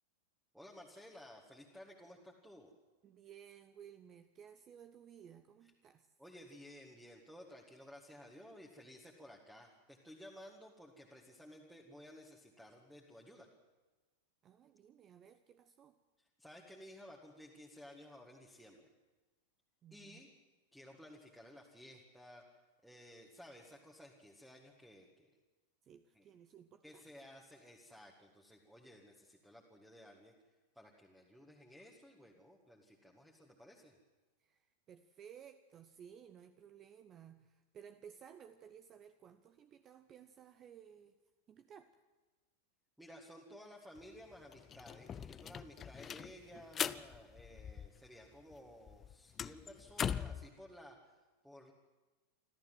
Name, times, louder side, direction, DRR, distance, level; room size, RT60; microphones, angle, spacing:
voice 1, 0.5-2.7 6.2-13.5 16.2-18.9 19.9-20.3 20.7-22.5 22.8-25.3 26.1-26.2 26.8-30.3 30.7-34.0 43.0-51.7, equal, 5° right, 0 dB, 2.0 m, -56 dB
voice 2, 3.0-6.1 14.4-16.0 19.8-20.2 25.8-27.0 34.4-41.2 41.5-42.0, right 8 dB, 30° right, 11 dB, 0.8 m, -57 dB
sound 1, 44.0-44.1 44.3-48.3 48.5-50.5, left 8 dB, 25° left, 0.6 m, -41 dB
25.5 x 14.0 x 7.7 m, 1.2 s
figure-of-eight pair, 90°, 0 cm